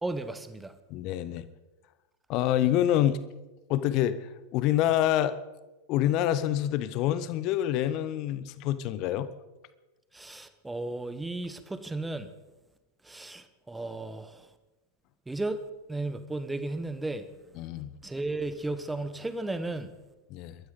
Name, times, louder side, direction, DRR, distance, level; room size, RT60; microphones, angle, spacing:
voice 1, 0.0-0.7 10.1-12.3 13.0-14.5 15.3-15.6 15.9-17.3 18.0-19.9, right 2 dB, 5° right, 1.2 m, -34 dB
voice 2, 0.9-1.5 2.3-3.2 3.7-5.4 5.9-9.3 17.6-17.9 20.3-20.6, left 12 dB, 40° left, 1.0 m, -27 dB
27.0 x 13.0 x 3.9 m
figure-of-eight pair, 90°, 0 cm